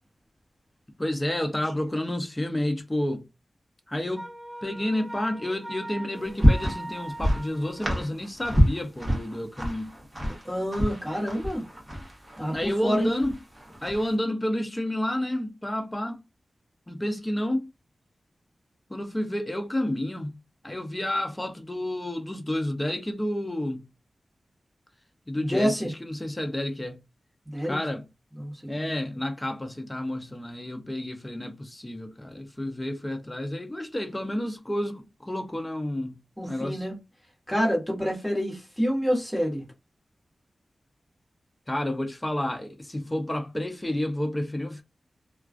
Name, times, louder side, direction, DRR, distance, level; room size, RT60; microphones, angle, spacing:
voice 1, 1.0-3.2 3.9-4.3 4.6-9.9 12.5-13.4 13.8-16.2 16.9-17.7 18.9-20.4 20.6-23.9 25.3-27.0 27.7-28.1 28.7-36.2 36.5-36.9 41.7-44.8, left 1 dB, 15° left, 0.5 m, -30 dB
Wind instrument woodwind instrument, 4.1-8.1, right 1 dB, 50° right, 1.0 m, -40 dB
sound 1, 6.2-14.1, equal, 20° right, 1.0 m, -27 dB
voice 2, 10.4-11.6 12.4-13.1 25.3-25.9 27.5-27.8 28.4-29.0 36.4-36.9 37.5-39.6, equal, ahead, 1.2 m, -27 dB
2.3 x 2.2 x 2.4 m
wide cardioid pair, 90°, 0 cm